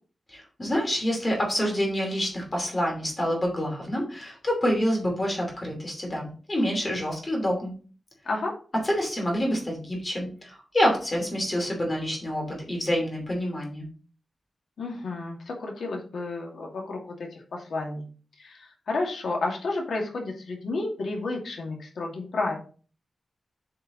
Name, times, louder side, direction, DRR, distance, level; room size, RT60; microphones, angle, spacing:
voice 1, 0.3-7.7 8.8-13.9, equal, 20° left, 0 dB, 2.7 m, -27 dB
voice 2, 14.8-18.0 18.4-22.6, left 3 dB, 85° left, 0 dB, 2.2 m, -31 dB
8.7 x 4.7 x 4.0 m, 0.40 s
wide cardioid pair, 180°, 0 cm